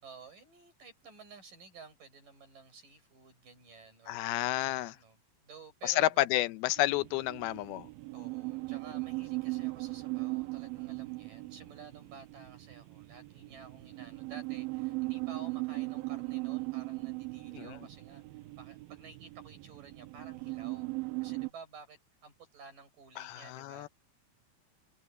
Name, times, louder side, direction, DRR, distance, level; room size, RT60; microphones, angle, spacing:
voice 1, 0.0-5.2 5.4-6.5 8.1-23.9, right 5 dB, 60° right, 9.0 m, -53 dB
voice 2, 4.1-4.9 5.8-7.9 17.5-17.8 23.2-23.9, left 16 dB, 90° left, 2.7 m, -30 dB
sound 1, 6.8-21.5, right 24 dB, 90° right, 2.7 m, -38 dB
omnidirectional pair, 4.3 m